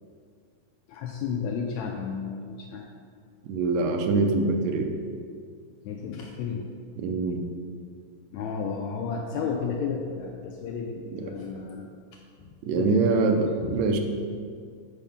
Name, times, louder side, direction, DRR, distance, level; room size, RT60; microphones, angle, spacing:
voice 1, 0.9-2.8 5.8-6.7 8.3-11.9 12.8-13.4 13.6-13.9, left 5 dB, 80° left, 1 dB, 1.8 m, -32 dB
voice 2, 3.5-4.9 7.0-7.4 11.2-11.3 12.6-14.0, right 3 dB, 75° right, 4 dB, 1.8 m, -24 dB
9.0 x 5.6 x 3.5 m, 2.1 s
omnidirectional pair, 3.4 m